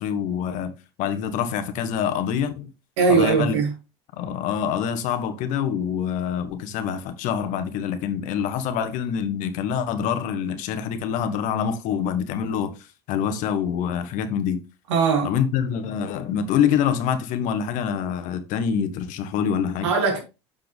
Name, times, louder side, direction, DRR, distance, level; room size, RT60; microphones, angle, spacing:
voice 1, 0.0-2.7 3.1-3.6 4.2-12.8 13.1-14.6 15.2-19.9, left 8 dB, 60° left, 1.2 m, -25 dB
voice 2, 3.0-3.7 14.9-15.3 19.8-20.2, right 5 dB, 85° right, 2.9 m, -20 dB
6.9 x 5.8 x 3.4 m
supercardioid pair, 90°, 15 cm